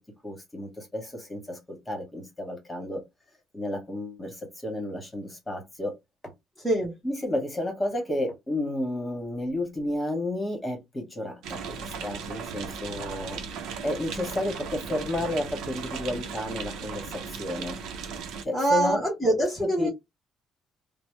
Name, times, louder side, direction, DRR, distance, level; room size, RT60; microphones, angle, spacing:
voice 1, 0.2-3.0 3.5-5.9 6.2-6.3 7.0-13.4 13.8-17.8 18.4-19.0 19.8-19.9, left 1 dB, 15° left, 1.3 m, -32 dB
voice 2, 6.6-7.0 18.5-19.9, right 1 dB, ahead, 0.9 m, -24 dB
sound 1, 11.4-18.4, right 5 dB, 85° right, 0.6 m, -37 dB
3.0 x 2.0 x 3.1 m
cardioid pair, 145°, 0 cm